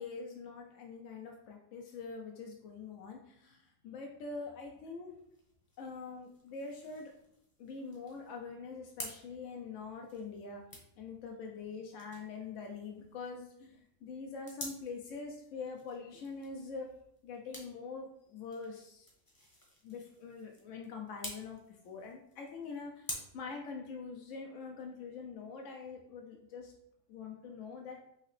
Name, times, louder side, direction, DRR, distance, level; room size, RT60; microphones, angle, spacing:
voice 1, 0.0-5.1 5.8-7.1 7.6-10.6 11.0-16.9 17.2-19.1 19.8-26.7 27.1-28.0, left 4 dB, 65° left, 1 dB, 0.8 m, -44 dB
sound 1, 5.1-23.1, left 1 dB, 15° left, 0.8 m, -51 dB
5.6 x 2.9 x 3.1 m, 0.76 s
omnidirectional pair, 1.7 m